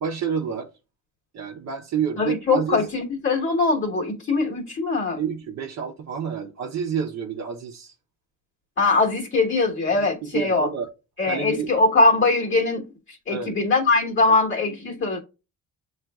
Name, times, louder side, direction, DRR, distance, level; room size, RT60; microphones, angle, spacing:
voice 1, 0.0-0.7 1.3-2.8 5.2-7.9 9.9-10.9 11.2-11.7 13.3-13.6 14.3-14.4, right 7 dB, 60° right, 0.8 m, -29 dB
voice 2, 2.2-5.2 8.8-10.7 11.2-12.9 13.3-15.2, left 3 dB, 40° left, 1.2 m, -21 dB
7.3 x 2.5 x 2.3 m
cardioid pair, 90°, 30 cm